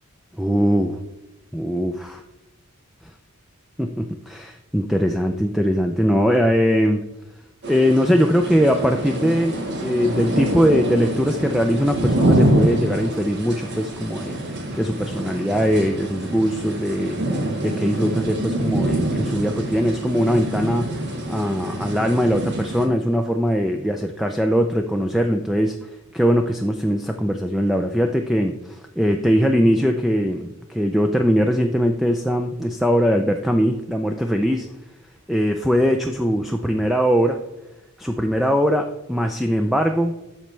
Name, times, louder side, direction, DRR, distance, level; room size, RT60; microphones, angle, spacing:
voice 1, 0.4-1.0 1.5-2.2 3.8-7.0 7.7-17.2 17.6-34.7 35.3-37.4 38.0-40.2, equal, ahead, 4 dB, 0.3 m, -21 dB
sound 1, 7.6-22.9, right 1 dB, 50° right, 1.4 m, -25 dB
12.5 x 4.4 x 3.2 m, 1.0 s
head